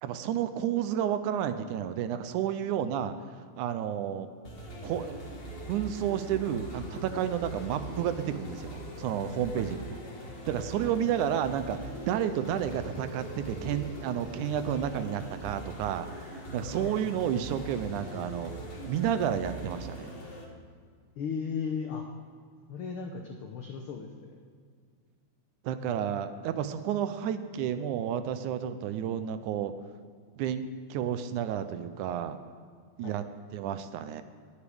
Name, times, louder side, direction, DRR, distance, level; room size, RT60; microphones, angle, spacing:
voice 1, 0.0-3.2 3.6-4.3 4.8-5.1 5.7-9.8 10.5-16.2 16.5-18.5 18.9-20.1 25.6-29.7 30.4-32.4 33.0-33.2 33.5-34.2, right 9 dB, 85° right, 11 dB, 2.1 m, -31 dB
sound 1, 4.4-20.4, right 1 dB, 30° left, 1.1 m, -41 dB
voice 2, 21.2-22.0 22.7-24.4 33.0-33.1, left 6 dB, 80° left, 3 dB, 1.2 m, -36 dB
19.0 x 9.7 x 3.5 m, 2.1 s
omnidirectional pair, 3.5 m